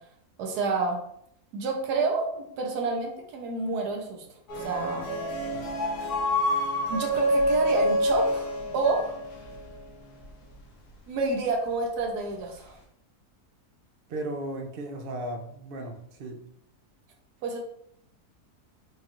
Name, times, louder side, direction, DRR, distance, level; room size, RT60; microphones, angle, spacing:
voice 1, 0.4-1.0 1.5-4.2 4.6-5.1 6.9-9.2 11.1-12.8 17.4-17.6, right 3 dB, 85° right, 1 dB, 1.3 m, -29 dB
sound 1, 4.5-9.8, equal, 75° left, 1.4 m, -27 dB
voice 2, 14.1-16.4, right 1 dB, 65° right, 3 dB, 0.5 m, -36 dB
4.8 x 2.4 x 3.0 m, 0.71 s
omnidirectional pair, 1.7 m